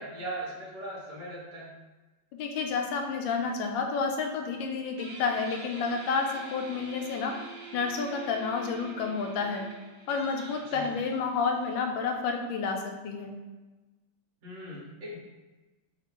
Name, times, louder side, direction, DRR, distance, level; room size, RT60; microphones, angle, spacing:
voice 1, 0.0-1.7 10.7-10.9 14.4-15.2, right 1 dB, 45° right, -6 dB, 1.5 m, -39 dB
voice 2, 2.3-7.3 7.7-9.7 10.1-13.3, left 5 dB, 80° left, 3 dB, 1.3 m, -30 dB
Guitar, 5.0-12.2, right 4 dB, 65° right, 1.3 m, -46 dB
3.5 x 3.0 x 4.2 m, 1.2 s
omnidirectional pair, 2.1 m